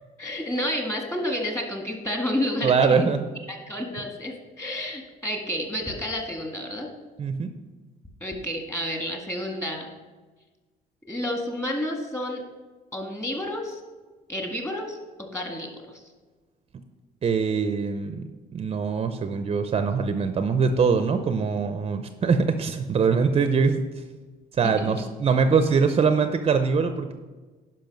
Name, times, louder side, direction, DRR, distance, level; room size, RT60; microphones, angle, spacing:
voice 1, 0.2-3.1 3.5-6.9 8.2-9.9 11.1-12.4 12.9-13.8 14.3-16.0 24.6-25.0, left 1 dB, 15° left, 2 dB, 1.8 m, -30 dB
voice 2, 2.6-3.2 7.2-7.5 17.2-23.8 24.6-27.1, right 5 dB, 35° right, 9 dB, 0.6 m, -23 dB
10.5 x 5.4 x 5.3 m, 1.3 s
cardioid pair, 110°, 17 cm